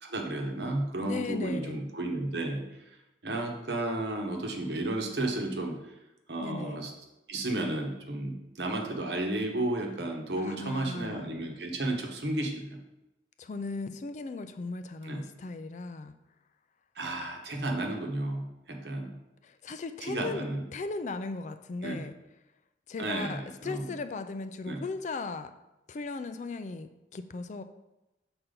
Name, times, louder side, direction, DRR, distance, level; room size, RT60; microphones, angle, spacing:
voice 1, 0.0-3.0 3.2-5.9 6.3-6.9 7.3-12.8 15.0-15.2 16.9-19.2 20.0-20.6 21.8-22.0 23.0-23.9 24.6-24.8, right 2 dB, 70° right, 2 dB, 1.0 m, -33 dB
voice 2, 1.0-1.8 6.4-6.8 10.4-11.3 13.4-16.1 19.4-22.2 22.9-25.5 25.9-27.6, left 3 dB, 45° left, 9 dB, 0.4 m, -37 dB
6.7 x 4.3 x 3.8 m, 0.96 s
head